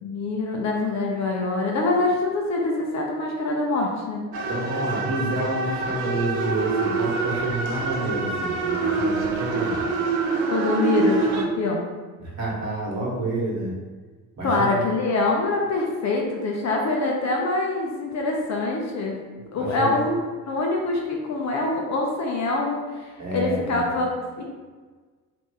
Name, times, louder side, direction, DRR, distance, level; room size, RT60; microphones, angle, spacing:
voice 1, 0.0-4.2 10.5-11.9 14.4-19.2 19.5-20.2 20.5-24.4, left 2 dB, 40° left, 0 dB, 0.6 m, -25 dB
sound 1, 4.3-11.4, right 3 dB, 70° right, 0.6 m, -25 dB
voice 2, 4.5-9.9 12.2-13.7 14.4-14.8 19.6-20.0 23.2-23.9, right 2 dB, 35° right, -5 dB, 1.4 m, -29 dB
2.8 x 2.4 x 3.8 m, 1.4 s
figure-of-eight pair, 50°, 44 cm